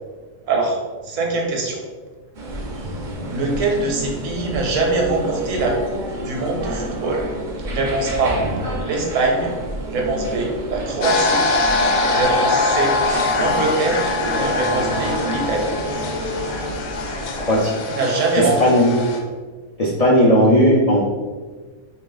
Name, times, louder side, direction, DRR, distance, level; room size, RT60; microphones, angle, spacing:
voice 1, 0.5-0.8 1.0-1.8 3.3-8.4 8.8-9.5 9.9-11.4 12.0-12.9 13.2-15.7 17.9-18.6, right 3 dB, 70° right, 0 dB, 1.1 m, -23 dB
sound 1, 2.3-17.6, right 1 dB, 55° right, 0.6 m, -29 dB
sound 2, 11.0-19.2, left 3 dB, 85° left, 1.0 m, -23 dB
voice 2, 17.4-17.8 18.4-18.9 19.8-21.0, equal, 60° left, -5 dB, 0.4 m, -15 dB
3.0 x 2.8 x 3.8 m, 1.4 s
omnidirectional pair, 1.4 m